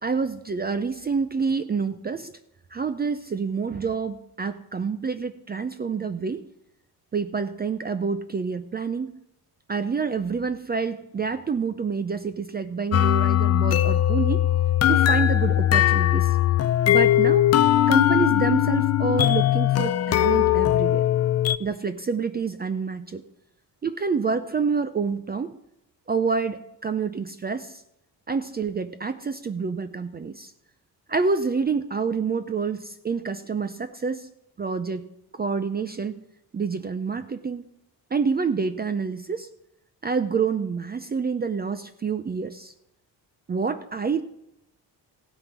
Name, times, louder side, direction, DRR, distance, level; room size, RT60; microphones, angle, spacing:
voice 1, 0.0-2.3 2.7-6.4 7.1-9.2 9.7-14.4 14.9-16.3 16.9-17.5 17.9-21.0 21.6-23.2 23.8-25.5 26.1-27.8 28.3-30.5 31.1-34.3 34.6-35.1 35.3-36.1 36.5-37.6 38.1-39.5 40.0-42.7 43.5-44.2, right 5 dB, 25° right, 11 dB, 0.5 m, -27 dB
sound 1, 12.9-21.6, left 12 dB, 40° left, 0.4 m, -20 dB
16.0 x 8.8 x 6.0 m, 0.80 s
cardioid pair, 125°, 40 cm